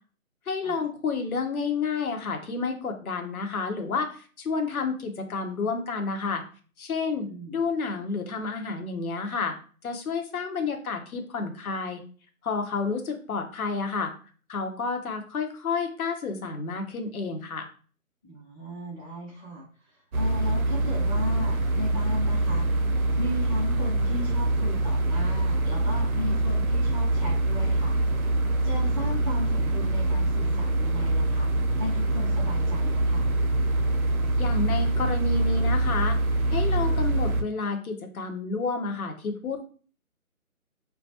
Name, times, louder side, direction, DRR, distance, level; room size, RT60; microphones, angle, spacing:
voice 1, 0.5-6.4 6.8-9.6 9.8-12.0 12.4-14.1 14.5-17.7 34.4-39.7, left 4 dB, 75° left, 5 dB, 0.8 m, -30 dB
voice 2, 7.3-7.7 18.2-22.7 23.2-27.9 28.6-31.5 31.7-33.3, left 1 dB, 10° left, -8 dB, 0.6 m, -36 dB
sound 1, 20.1-37.4, right 2 dB, 75° right, 0.6 m, -24 dB
2.2 x 2.2 x 2.7 m, 0.41 s
figure-of-eight pair, 160°, 43 cm